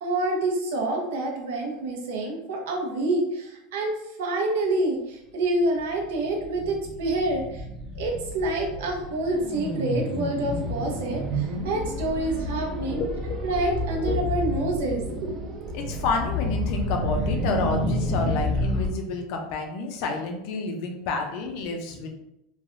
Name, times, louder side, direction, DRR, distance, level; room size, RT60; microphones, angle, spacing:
voice 1, 0.0-7.6 7.9-13.0 13.4-15.4, right 2 dB, 80° right, 1 dB, 0.7 m, -27 dB
sound 1, 5.8-18.9, equal, 25° right, 0.5 m, -30 dB
voice 2, 15.7-22.1, left 3 dB, 60° left, 3 dB, 0.5 m, -29 dB
3.2 x 2.2 x 2.5 m, 0.82 s
supercardioid pair, 140°, 0 cm